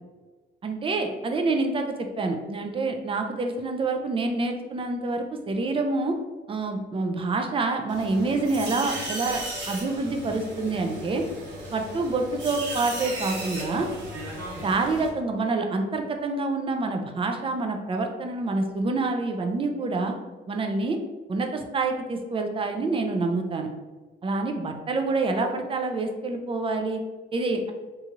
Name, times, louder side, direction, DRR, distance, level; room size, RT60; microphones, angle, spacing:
voice 1, 0.6-6.2 6.5-9.4 9.7-11.2 11.7-13.9 14.6-20.1 20.5-21.0 21.3-23.7 24.2-27.0 27.3-27.7, right 3 dB, 25° right, 4 dB, 0.4 m, -27 dB
sound 1, 7.9-15.1, right 1 dB, 65° right, 1.1 m, -36 dB
2.7 x 2.4 x 2.8 m, 1.3 s
cardioid pair, 90°, 20 cm